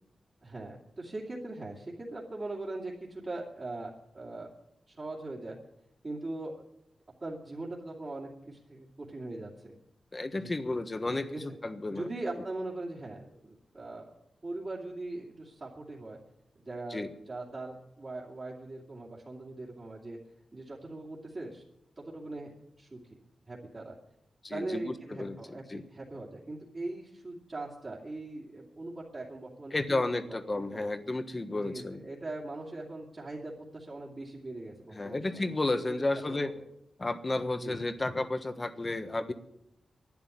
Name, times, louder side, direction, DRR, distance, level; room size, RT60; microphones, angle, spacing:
voice 1, 0.4-4.5 4.9-5.6 6.0-6.6 7.2-9.7 10.3-11.4 11.9-14.1 14.4-16.2 16.5-20.2 20.5-21.6 22.0-22.5 22.8-23.2 23.5-24.0 24.5-30.9 31.6-36.5 37.6-37.8, right 2 dB, 35° right, -5 dB, 2.7 m, -41 dB
voice 2, 10.1-12.1 16.9-17.1 24.4-25.8 29.7-32.0 34.9-36.5 37.0-39.3, left 2 dB, 25° left, 9 dB, 1.3 m, -32 dB
11.5 x 10.5 x 9.9 m, 0.81 s
wide cardioid pair, 105°, 0 cm